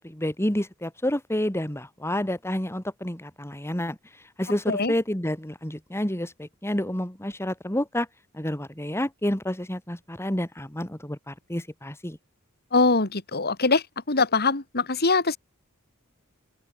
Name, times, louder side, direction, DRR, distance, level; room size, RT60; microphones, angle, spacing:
voice 1, 0.0-4.0 4.4-8.1 8.3-12.2, left 1 dB, 10° left, 2.3 m, -29 dB
voice 2, 12.7-15.4, left 3 dB, 45° left, 2.5 m, -23 dB
open air
head